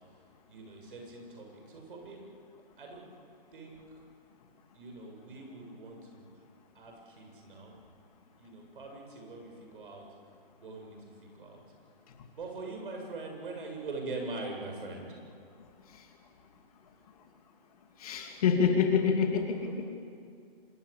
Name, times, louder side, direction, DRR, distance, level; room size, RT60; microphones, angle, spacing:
voice 1, 0.5-2.2 2.8-3.1 3.5-3.8 4.7-6.3 6.7-7.7 8.4-10.0 10.6-11.6 12.4-15.2, right 3 dB, 60° right, 2 dB, 7.7 m, -42 dB
voice 2, 18.0-19.9, left 6 dB, 35° left, 3 dB, 2.8 m, -27 dB
26.0 x 21.5 x 8.6 m, 2.3 s
hypercardioid pair, 160°, 30 cm